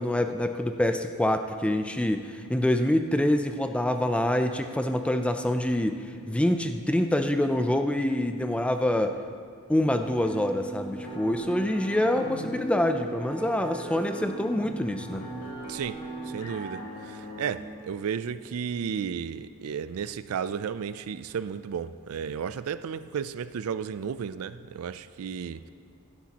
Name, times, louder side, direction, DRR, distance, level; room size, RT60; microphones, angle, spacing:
voice 1, 0.0-6.0 6.3-9.2 9.7-15.2, left 1 dB, 5° left, 0.4 m, -26 dB
sound 1, 10.0-17.6, right 2 dB, 80° left, 2.1 m, -39 dB
voice 2, 15.7-16.0 16.3-25.7, right 7 dB, 70° right, 0.4 m, -33 dB
16.0 x 12.5 x 2.9 m
head